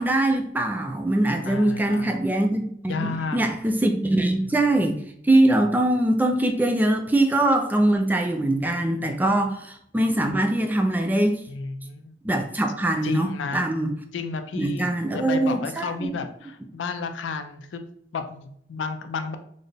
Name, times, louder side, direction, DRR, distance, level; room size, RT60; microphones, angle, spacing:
voice 1, 0.0-5.0 5.2-11.4 12.2-13.9 14.6-16.1, right 1 dB, 10° right, 4 dB, 0.3 m, -22 dB
voice 2, 1.4-2.1 2.9-3.4 4.4-4.5 8.7-8.9 11.5-12.2 13.0-13.7 14.1-17.8 18.1-19.4, left 4 dB, 85° left, 8 dB, 0.4 m, -32 dB
3.8 x 2.0 x 3.4 m, 0.68 s
head